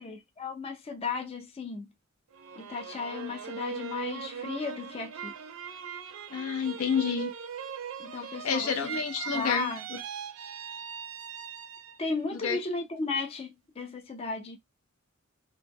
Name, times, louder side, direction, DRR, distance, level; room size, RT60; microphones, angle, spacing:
voice 1, 0.0-1.9 2.6-5.3 8.0-9.9 12.0-14.6, left 4 dB, 25° left, 0.3 m, -35 dB
sound 1, 2.3-12.1 12.6-13.2, right 7 dB, 70° right, 0.4 m, -40 dB
voice 2, 6.3-7.3 8.4-10.0 12.3-12.6, left 6 dB, 85° left, 0.5 m, -29 dB
2.0 x 2.0 x 3.4 m
head